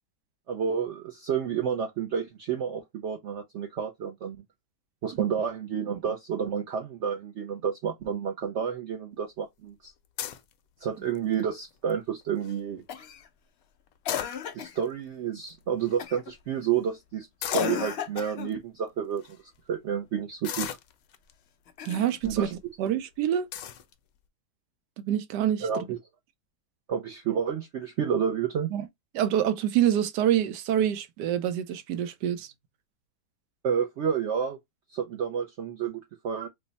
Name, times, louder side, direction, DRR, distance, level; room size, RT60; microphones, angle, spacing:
voice 1, 0.5-4.4 5.0-9.9 10.8-12.8 14.5-17.3 17.5-19.4 19.7-20.7 22.2-22.5 25.6-26.0 26.9-28.7 33.6-34.6 34.9-36.5, right 7 dB, 70° right, 0.6 m, -30 dB
sound 1, 10.2-10.5 11.1-11.5 11.9-12.0 12.2-12.6 13.9-14.8 15.5-15.6 15.8-16.0 17.4-17.8 18.5-18.6 19.2-19.4 20.4-21.3 22.1-22.4 22.9-23.0 23.5-23.8, left 10 dB, 70° left, 0.9 m, -35 dB
Cough, 12.9-13.3 14.0-14.8 16.0-16.3 17.5-18.6 21.7-22.5 23.9-24.0, left 8 dB, 90° left, 0.5 m, -34 dB
voice 2, 21.8-22.5 22.8-23.5 25.0-25.8 28.7-28.8 29.1-32.5, right 10 dB, 90° right, 1.2 m, -26 dB
3.3 x 2.1 x 3.9 m
omnidirectional pair, 1.7 m